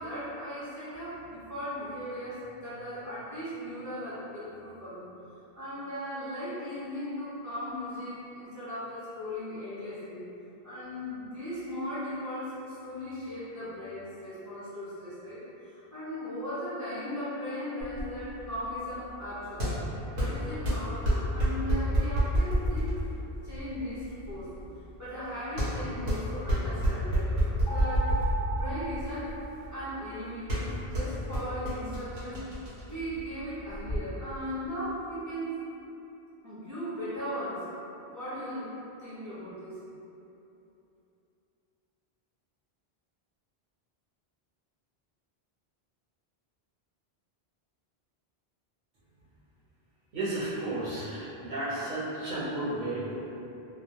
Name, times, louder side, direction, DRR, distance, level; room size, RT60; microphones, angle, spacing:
voice 1, 0.0-5.0 5.6-10.3 10.6-19.7 20.1-22.9 23.4-24.5 25.0-27.3 27.7-28.1 28.4-29.3 29.7-32.4 32.9-35.5 36.4-37.7 38.0-38.7 39.0-39.8, equal, 20° right, -13 dB, 0.5 m, -37 dB
sound 1, 17.8-34.0, equal, 80° right, 0.9 m, -30 dB
sound 2, 27.7-30.1, right 4 dB, 50° left, 0.3 m, -37 dB
voice 2, 50.1-53.3, right 1 dB, 50° right, -10 dB, 0.8 m, -33 dB
2.2 x 2.1 x 2.7 m, 2.9 s
omnidirectional pair, 1.1 m